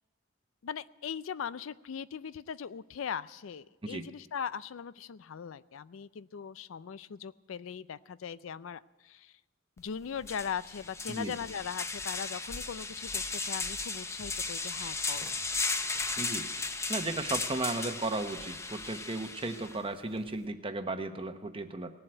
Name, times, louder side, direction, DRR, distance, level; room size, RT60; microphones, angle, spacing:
voice 1, 0.6-9.3 9.8-15.3, left 7 dB, 80° left, 17 dB, 0.4 m, -39 dB
sound 1, 9.8-9.9 10.2-19.8, left 3 dB, 15° left, 0.6 m, -36 dB
voice 2, 16.2-16.5 16.9-21.9, right 2 dB, 25° right, 7 dB, 1.0 m, -35 dB
18.0 x 7.7 x 8.9 m, 1.2 s
head